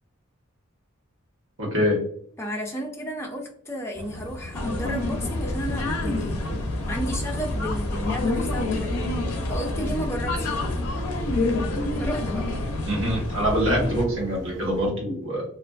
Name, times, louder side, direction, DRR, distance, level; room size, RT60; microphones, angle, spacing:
voice 1, 1.6-2.0 12.8-15.4, equal, 60° right, -2 dB, 1.0 m, -24 dB
voice 2, 2.4-6.4 6.9-8.9 9.5-10.5 12.0-12.4, equal, 10° left, 1 dB, 0.4 m, -33 dB
sound 1, 3.9-14.9, left 1 dB, 20° right, 1.3 m, -40 dB
sound 2, 4.5-14.1, left 2 dB, 75° left, 0.4 m, -27 dB
2.4 x 2.4 x 2.2 m, 0.63 s
head